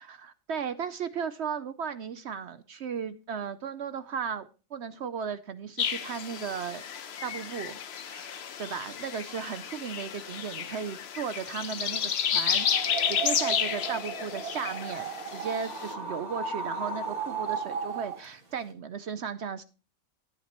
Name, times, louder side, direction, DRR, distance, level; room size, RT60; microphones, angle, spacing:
voice 1, 0.0-6.8 7.2-19.6, right 6 dB, 60° right, 12 dB, 0.8 m, -36 dB
sound 1, 5.8-15.9, left 8 dB, 55° left, 0.9 m, -32 dB
sound 2, 12.5-18.3, right 5 dB, 85° right, 2.9 m, -35 dB
13.5 x 9.2 x 3.0 m, 0.34 s
omnidirectional pair, 1.5 m